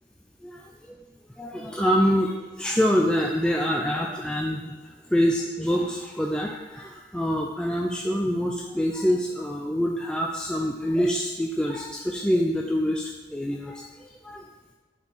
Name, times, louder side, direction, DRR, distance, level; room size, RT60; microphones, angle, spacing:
voice 1, 0.4-1.0 1.4-14.5, equal, 5° left, -1 dB, 0.4 m, -26 dB
8.7 x 4.4 x 4.4 m, 1.2 s
head